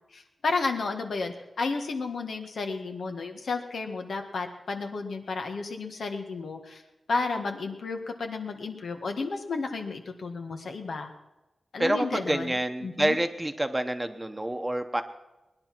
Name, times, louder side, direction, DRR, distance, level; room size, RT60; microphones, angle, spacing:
voice 1, 0.1-6.8 7.1-11.1 11.7-12.5 12.8-13.2, left 4 dB, 80° left, 4 dB, 1.7 m, -32 dB
voice 2, 11.8-15.0, right 1 dB, 10° right, 7 dB, 1.0 m, -27 dB
20.0 x 10.5 x 6.0 m, 1.0 s
wide cardioid pair, 145°, 0 cm